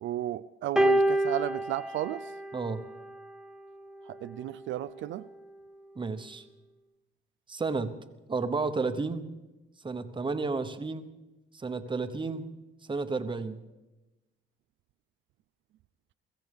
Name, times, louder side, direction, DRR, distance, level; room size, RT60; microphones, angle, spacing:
voice 1, 0.0-2.3 4.1-5.3, right 14 dB, 75° right, 0.4 m, -34 dB
sound 1, 0.8-3.2 4.2-4.4, right 1 dB, 5° right, 0.8 m, -27 dB
voice 2, 2.5-2.8 6.0-6.4 7.5-8.0 8.3-9.3 9.8-11.1 11.5-12.5 12.9-13.6, right 4 dB, 25° right, 1.0 m, -32 dB
22.5 x 15.0 x 3.5 m
cardioid pair, 90°, 20 cm